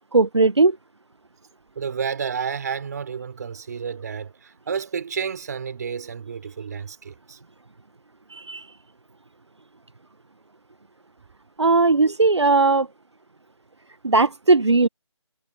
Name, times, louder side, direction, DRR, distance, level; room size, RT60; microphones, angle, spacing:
voice 1, 0.1-0.8 8.3-8.7 11.6-12.9 14.0-14.9, right 3 dB, 65° right, 1.3 m, -18 dB
voice 2, 1.8-7.4, right 6 dB, 35° right, 4.1 m, -31 dB
figure-of-eight pair, 150°, 16 cm